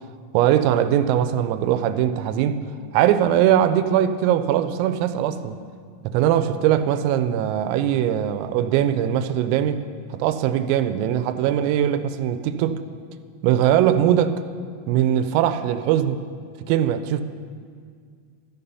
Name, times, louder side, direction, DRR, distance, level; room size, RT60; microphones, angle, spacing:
voice 1, 0.3-2.6 2.9-5.6 6.0-9.8 10.1-12.8 13.4-14.3 14.9-16.2 16.7-17.2, right 10 dB, 90° right, 11 dB, 3.3 m, -21 dB
13.0 x 11.0 x 5.5 m, 2.1 s
omnidirectional pair, 5.9 m